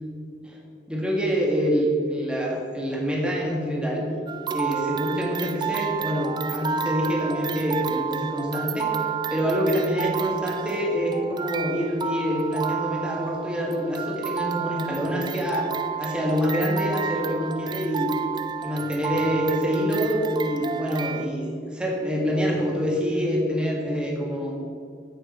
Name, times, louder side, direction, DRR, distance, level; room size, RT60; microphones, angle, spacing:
voice 1, 0.9-4.1 4.5-9.0 9.3-15.7 16.0-18.1 18.6-24.5, equal, 5° right, -2 dB, 1.9 m, -26 dB
sound 1, 4.3-21.3, right 7 dB, 25° right, 0.4 m, -31 dB
9.0 x 7.5 x 7.4 m, 2.2 s
head